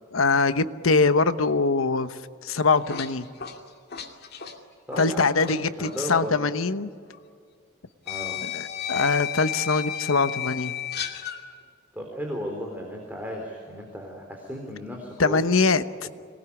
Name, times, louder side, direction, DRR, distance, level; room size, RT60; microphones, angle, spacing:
voice 1, 0.1-3.3 5.0-6.9 8.4-10.7 15.2-16.1, left 4 dB, 75° left, 12 dB, 1.0 m, -23 dB
sound 1, 2.5-5.6 5.8-6.0 7.1-7.2 8.1-11.4, left 9 dB, 50° left, 2.5 m, -33 dB
voice 2, 4.9-6.4 8.1-8.4 11.9-15.4 16.0-16.1, equal, 10° right, 0 dB, 3.8 m, -35 dB
26.0 x 19.5 x 9.9 m, 2.2 s
head